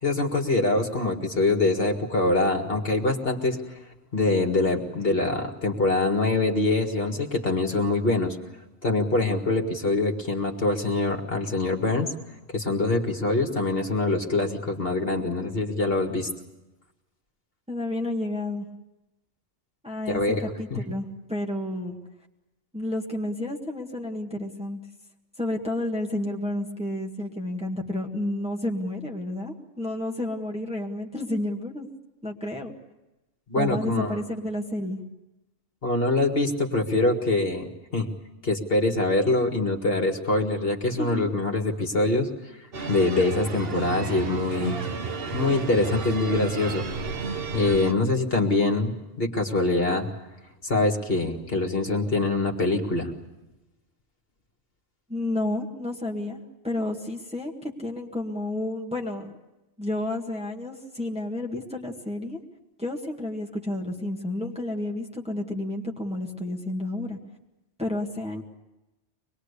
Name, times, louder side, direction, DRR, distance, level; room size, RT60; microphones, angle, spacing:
voice 1, 0.0-3.8 4.1-8.4 8.8-12.1 12.5-16.3 20.1-20.8 33.5-34.2 35.8-38.1 38.4-42.3 42.9-44.8 45.3-47.2 47.5-50.1 50.6-53.1, left 2 dB, 50° left, 3 dB, 2.2 m, -24 dB
voice 2, 17.7-18.7 19.8-22.0 22.7-24.8 25.4-31.9 32.2-32.7 33.6-35.0 40.9-41.3 55.1-59.4 59.8-62.4 62.8-67.2 67.8-68.4, left 1 dB, 5° right, 0 dB, 1.9 m, -31 dB
sound 1, 42.7-47.9, right 4 dB, 55° right, 1.3 m, -32 dB
24.5 x 21.0 x 8.3 m, 1.0 s
omnidirectional pair, 1.3 m